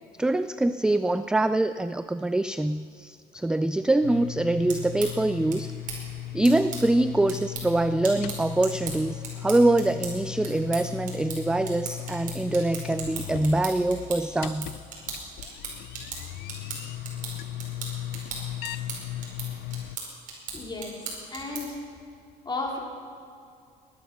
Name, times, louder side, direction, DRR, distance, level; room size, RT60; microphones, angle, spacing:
voice 1, 0.2-5.7 6.3-14.7, right 2 dB, 5° right, 12 dB, 0.3 m, -24 dB
sound 1, 4.0-20.0, left 13 dB, 80° left, 0.5 m, -37 dB
sound 2, 4.6-21.9, right 4 dB, 55° right, 4.7 m, -39 dB
voice 2, 20.5-21.0 21.3-21.8 22.4-22.8, left 3 dB, 25° left, 0 dB, 3.3 m, -33 dB
20.0 x 11.5 x 6.0 m, 2.4 s
cardioid pair, 110°, 17 cm